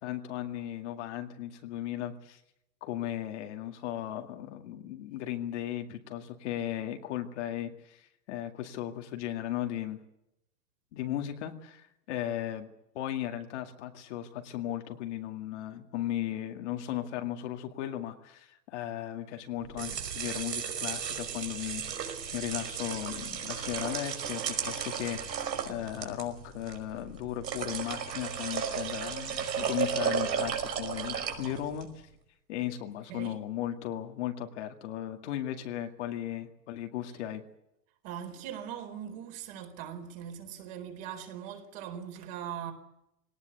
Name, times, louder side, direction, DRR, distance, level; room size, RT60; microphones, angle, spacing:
voice 1, 0.0-2.4 2.8-10.0 10.9-12.7 12.9-32.1 32.5-37.4, left 12 dB, 45° left, 2.2 m, -36 dB
sound 1, 19.6-31.9, right 7 dB, 85° right, 5.4 m, -34 dB
voice 2, 38.0-42.7, right 9 dB, 35° right, 4.3 m, -40 dB
22.5 x 18.5 x 8.3 m
hypercardioid pair, 155°, 50 cm